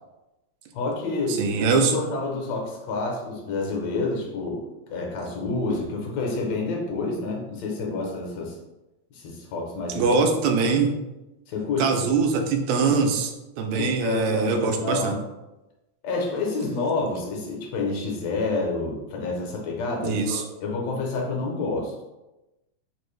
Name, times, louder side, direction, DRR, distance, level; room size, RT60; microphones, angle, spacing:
voice 1, 0.7-4.6 4.9-8.6 9.1-10.0 11.5-12.2 13.8-15.2 16.0-21.9, left 3 dB, 75° left, 0 dB, 1.7 m, -29 dB
voice 2, 1.3-2.0 10.0-10.9 11.8-15.1 20.0-20.4, right 4 dB, 80° right, 4 dB, 1.8 m, -23 dB
4.5 x 2.6 x 3.1 m, 1.0 s
omnidirectional pair, 3.4 m